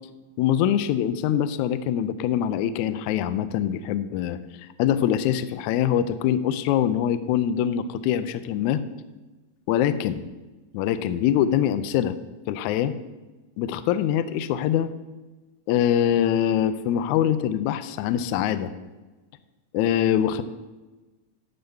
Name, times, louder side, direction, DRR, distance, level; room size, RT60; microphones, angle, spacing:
voice 1, 0.4-8.8 9.7-10.2 10.7-12.2 12.5-12.9 13.6-14.9 15.7-18.7 19.7-20.4, left 10 dB, 80° left, 12 dB, 1.7 m, -24 dB
12.0 x 4.0 x 7.9 m, 1.2 s
omnidirectional pair, 3.8 m